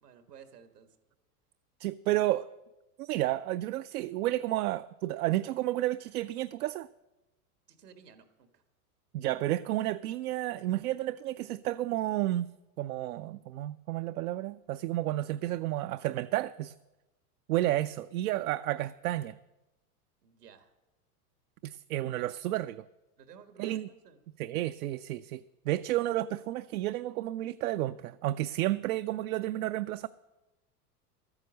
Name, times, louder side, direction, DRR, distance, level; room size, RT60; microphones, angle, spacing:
voice 1, 0.0-1.0 7.7-8.6 20.2-20.7 23.2-24.2, right 7 dB, 85° right, 1.6 m, -54 dB
voice 2, 1.8-2.5 3.0-6.9 9.1-12.5 12.8-16.7 17.5-19.4 21.6-22.8 23.6-23.9 24.4-30.1, right 15 dB, 70° right, 0.5 m, -31 dB
13.0 x 9.7 x 6.4 m
hypercardioid pair, 100°, 46 cm